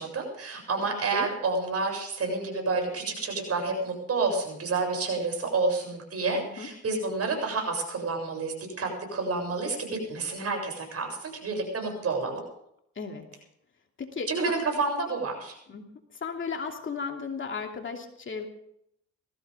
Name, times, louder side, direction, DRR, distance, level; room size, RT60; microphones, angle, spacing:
voice 1, 0.0-12.4 14.3-15.6, right 3 dB, 50° right, 2 dB, 7.5 m, -29 dB
voice 2, 6.3-6.7 13.0-13.2 14.0-14.5 15.7-15.9 16.2-18.5, left 5 dB, 40° left, 3 dB, 2.8 m, -35 dB
20.0 x 15.5 x 3.7 m, 0.73 s
cardioid pair, 90°, 30 cm